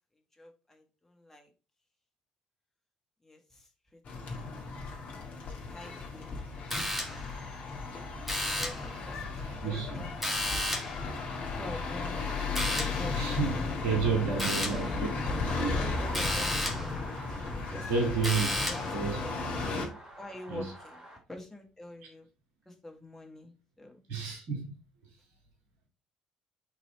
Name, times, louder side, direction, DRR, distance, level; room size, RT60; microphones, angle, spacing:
voice 1, 0.3-1.5 3.2-4.0 5.7-6.4 8.3-10.1 11.4-12.3 12.8-13.2 13.4-14.6 15.8-17.1 17.7-19.4 20.2-21.0 21.3-22.3 22.7-24.0, left 1 dB, 10° left, 1.8 m, -46 dB
sound 1, 4.0-19.9, left 3 dB, 45° left, 2.0 m, -35 dB
sound 2, 6.7-7.4 8.3-8.9 10.2-11.0 12.6-13.1 14.4-14.9 16.1-16.9 18.2-19.0, left 1 dB, 5° right, 1.8 m, -32 dB
voice 2, 9.2-10.0 11.0-11.1 13.1-15.1 15.6-15.9 17.9-18.5 18.9-19.2 19.7-19.9 20.5-20.7 24.1-24.7, right 5 dB, 60° right, 1.8 m, -31 dB
sound 3, 13.7-21.2, right 1 dB, 25° right, 3.6 m, -48 dB
7.2 x 4.1 x 4.3 m
figure-of-eight pair, 50°, 3 cm